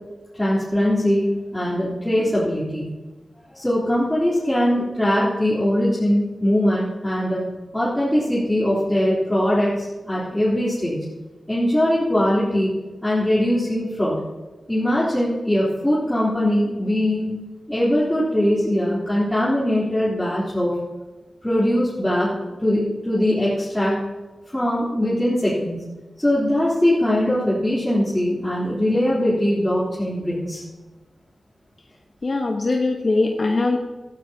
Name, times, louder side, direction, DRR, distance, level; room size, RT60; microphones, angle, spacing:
voice 1, 0.4-2.9 3.5-7.4 7.7-11.0 11.5-12.7 13.0-14.2 14.7-17.4 17.7-20.7 21.4-22.3 22.6-24.0 24.5-25.9 26.2-30.6, left 1 dB, 10° left, -10 dB, 3.6 m, -21 dB
voice 2, 32.2-33.8, left 3 dB, 50° left, 1 dB, 1.2 m, -21 dB
16.0 x 14.5 x 2.9 m, 1.2 s
wide cardioid pair, 80°, 0 cm